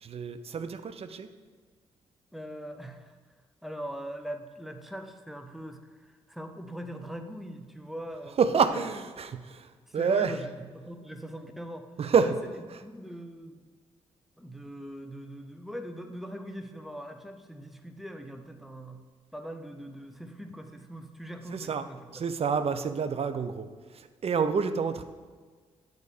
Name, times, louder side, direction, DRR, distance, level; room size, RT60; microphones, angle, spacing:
voice 1, 0.0-1.3 8.4-10.3 12.0-12.3 21.5-21.8 22.1-23.7 23.9-25.0, right 6 dB, 50° right, 10 dB, 0.5 m, -28 dB
voice 2, 2.3-3.1 3.6-8.4 8.7-8.9 9.9-11.9 12.2-12.3 12.8-13.6 14.4-19.0 19.3-22.2, equal, ahead, 6 dB, 0.8 m, -41 dB
7.2 x 4.0 x 4.9 m, 1.5 s
supercardioid pair, 50°, 13 cm